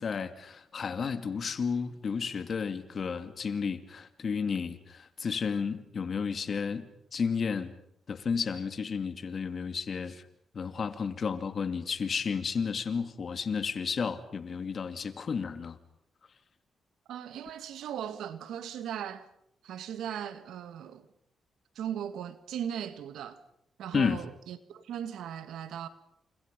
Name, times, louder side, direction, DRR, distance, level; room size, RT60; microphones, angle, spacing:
voice 1, 0.0-6.8 7.1-7.7 8.1-10.2 10.5-15.8 23.9-24.2, left 6 dB, 55° left, 2.5 m, -32 dB
voice 2, 17.1-19.3 19.6-21.1 21.8-23.4 23.8-25.9, right 9 dB, 80° right, 2.0 m, -38 dB
30.0 x 29.0 x 5.4 m
supercardioid pair, 60°, 0 cm